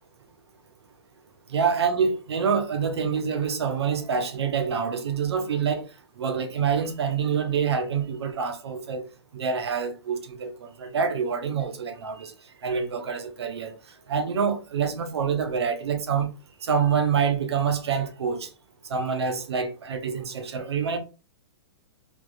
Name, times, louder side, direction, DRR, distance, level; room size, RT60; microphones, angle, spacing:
voice 1, 1.5-5.8 6.2-9.0 9.3-12.3 12.6-13.7 14.1-16.3 16.6-18.5 18.9-21.0, right 6 dB, 85° right, 0.8 m, -26 dB
3.5 x 3.0 x 2.3 m
hypercardioid pair, 140°, 13 cm